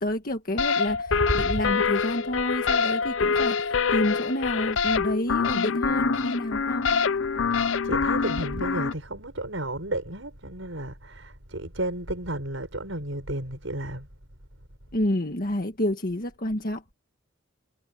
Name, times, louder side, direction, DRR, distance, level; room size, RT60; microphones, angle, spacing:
voice 1, 0.0-6.9 14.9-16.8, left 1 dB, 45° left, 1.7 m, -29 dB
sound 1, 0.6-8.9, left 5 dB, 75° left, 0.6 m, -25 dB
voice 2, 7.8-14.1, right 1 dB, 80° right, 6.8 m, -32 dB
head